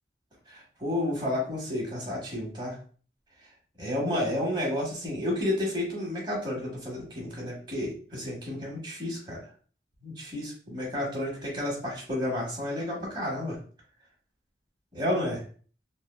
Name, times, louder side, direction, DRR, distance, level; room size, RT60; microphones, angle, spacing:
voice 1, 0.5-2.8 3.8-9.4 10.0-13.6 14.9-15.4, left 1 dB, 25° right, -3 dB, 1.2 m, -31 dB
3.7 x 2.3 x 2.3 m, 0.42 s
head